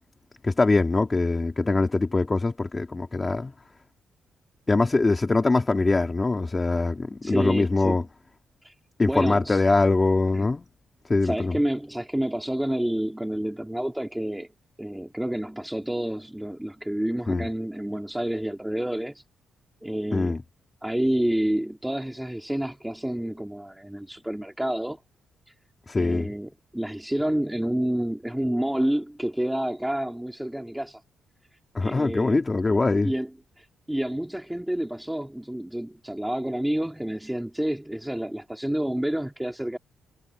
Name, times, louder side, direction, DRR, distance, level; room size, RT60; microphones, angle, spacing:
voice 1, 0.4-3.5 4.7-8.0 9.0-10.7 11.1-11.6 17.3-17.5 20.1-20.4 25.9-26.3 31.7-33.1, left 3 dB, 20° left, 3.1 m, -23 dB
voice 2, 7.2-8.0 8.6-8.7 9.0-9.6 10.3-10.5 11.2-14.5 14.8-19.2 19.8-20.4 20.8-25.0 25.9-31.0 31.8-32.4 33.0-33.3 33.6-39.8, right 1 dB, 5° right, 3.2 m, -29 dB
cardioid pair, 145°, 0 cm